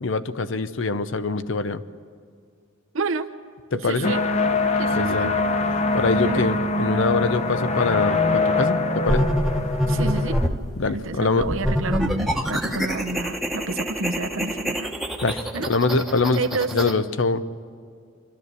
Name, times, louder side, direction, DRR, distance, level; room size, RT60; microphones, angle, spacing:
voice 1, 0.0-1.8 3.7-4.1 5.0-5.3 5.9-9.3 10.8-11.5 15.2-15.4 15.7-16.4 16.7-17.4, left 3 dB, 65° left, 13 dB, 0.7 m, -24 dB
voice 2, 2.9-3.3 3.7-4.2 4.8-5.4 6.2-6.5 9.9-10.4 10.9-14.9 15.5-15.7 16.4-16.7, right 3 dB, 75° right, 8 dB, 0.9 m, -29 dB
sound 1, 4.0-10.5, left 3 dB, 35° left, 0.8 m, -23 dB
sound 2, 9.1-10.7 11.4-16.9, equal, ahead, 1.1 m, -26 dB
25.0 x 12.5 x 8.3 m, 2.2 s
head